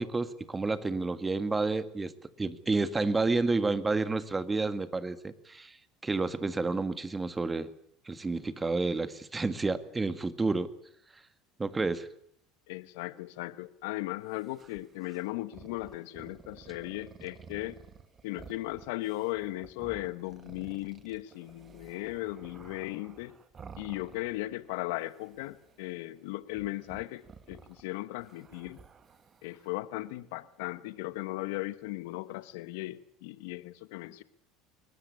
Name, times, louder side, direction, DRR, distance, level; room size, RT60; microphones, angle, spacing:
voice 1, 0.0-2.1 2.4-5.8 6.0-7.7 8.1-10.7 11.6-12.1, right 3 dB, 20° right, 12 dB, 1.9 m, -30 dB
voice 2, 12.7-17.8 18.2-23.3 23.8-28.8 29.4-34.2, left 18 dB, 75° left, 15 dB, 1.2 m, -37 dB
sound 1, 14.3-24.7 25.0-26.0 26.5-29.7, right 6 dB, 35° right, 1.9 m, -53 dB
22.0 x 19.5 x 8.5 m, 0.71 s
hypercardioid pair, 80°, 0 cm